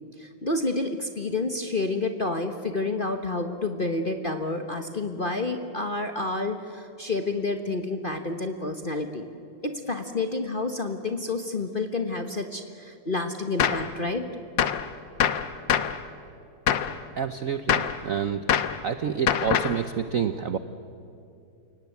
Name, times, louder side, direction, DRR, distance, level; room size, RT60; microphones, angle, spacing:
voice 1, 0.2-9.3 9.6-14.3, left 2 dB, 35° left, 6 dB, 1.0 m, -29 dB
Gunshot gunfire, 13.6-13.9 14.6-14.9 15.2-16.0 16.7-17.0 17.7-18.0 18.5-18.8 19.3-19.8, left 9 dB, 65° left, 1.5 m, -24 dB
voice 2, 17.2-18.5 18.8-20.6, right 7 dB, 60° right, 10 dB, 0.8 m, -28 dB
29.5 x 18.0 x 9.4 m, 2.6 s
omnidirectional pair, 2.4 m